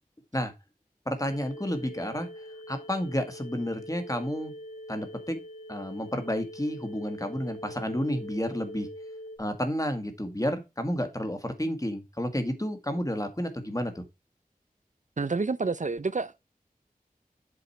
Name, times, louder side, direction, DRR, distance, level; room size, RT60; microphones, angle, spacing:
voice 1, 1.1-2.3 2.7-4.5 4.9-5.4 5.7-8.9 9.4-14.0, equal, 25° left, 1.9 m, -31 dB
sound 1, 1.3-9.4, equal, 65° left, 2.0 m, -43 dB
voice 2, 15.2-16.4, right 4 dB, 55° right, 0.5 m, -29 dB
7.9 x 5.0 x 4.4 m
wide cardioid pair, 45°, 15 cm